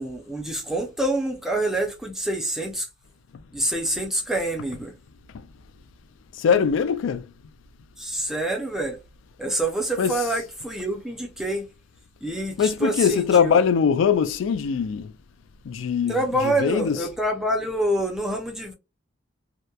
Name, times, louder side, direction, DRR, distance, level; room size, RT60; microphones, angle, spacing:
voice 1, 0.0-2.9 3.5-4.9 8.0-9.0 9.4-11.7 12.2-13.6 16.1-18.7, right 1 dB, ahead, 0.5 m, -26 dB
voice 2, 6.4-7.2 10.0-10.1 12.6-15.1 15.7-16.2 16.6-17.0, left 6 dB, 85° left, 0.3 m, -21 dB
2.8 x 2.1 x 2.2 m
head